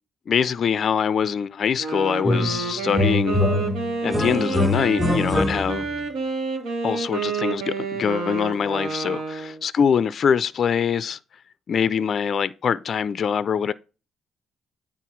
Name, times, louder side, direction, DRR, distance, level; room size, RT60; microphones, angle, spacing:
voice 1, 0.3-3.4 4.0-5.9 6.8-11.2 11.7-13.7, left 7 dB, 55° left, 0.3 m, -23 dB
Wind instrument woodwind instrument, 1.6-9.6, right 4 dB, 85° right, 1.9 m, -29 dB
sound 1, 2.2-2.6 2.9-6.0, left 2 dB, ahead, 1.1 m, -23 dB
9.1 x 3.8 x 4.5 m
cardioid pair, 90°, 0 cm